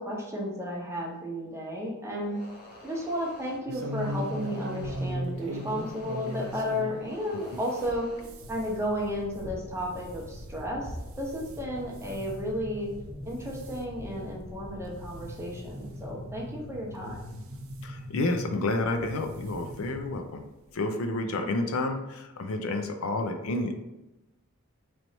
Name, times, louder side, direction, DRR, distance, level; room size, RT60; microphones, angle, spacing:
voice 1, 0.0-2.4 2.8-8.1 8.5-12.9 13.2-17.2, equal, 10° right, -3 dB, 0.9 m, -33 dB
sound 1, 2.2-8.3, left 1 dB, 45° left, 0.9 m, -49 dB
sound 2, 3.7-7.0 7.4-11.6 12.0-12.3 12.9-13.2 13.5-13.8 14.4-14.5 14.9-15.0 16.1-16.2 17.0-17.8 18.9-19.1 19.5-19.6 19.9-20.0, right 1 dB, 70° right, 0.5 m, -37 dB
sound 3, 8.4-20.1, equal, 20° left, 1.1 m, -43 dB
voice 2, 17.8-20.4 20.7-23.7, left 2 dB, 75° left, 5 dB, 0.5 m, -30 dB
3.2 x 3.0 x 3.9 m, 0.98 s
head